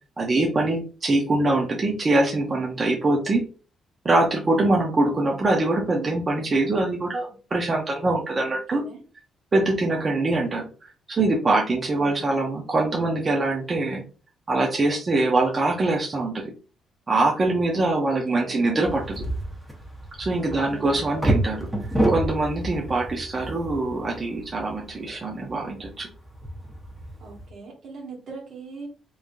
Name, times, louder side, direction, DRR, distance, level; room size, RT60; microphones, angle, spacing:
voice 1, 0.2-3.4 4.0-8.8 9.5-14.0 14.5-16.5 17.1-19.3 20.2-21.7 22.1-26.1, right 2 dB, 35° right, 0 dB, 0.8 m, -23 dB
voice 2, 8.4-9.0 11.9-12.1 18.0-18.7 20.5-21.0 27.2-28.9, right 3 dB, 65° right, -1 dB, 1.7 m, -41 dB
sound 1, 18.8-27.5, right 1 dB, 10° right, 1.2 m, -30 dB
3.6 x 3.1 x 2.6 m, 0.37 s
cardioid pair, 90°, 0 cm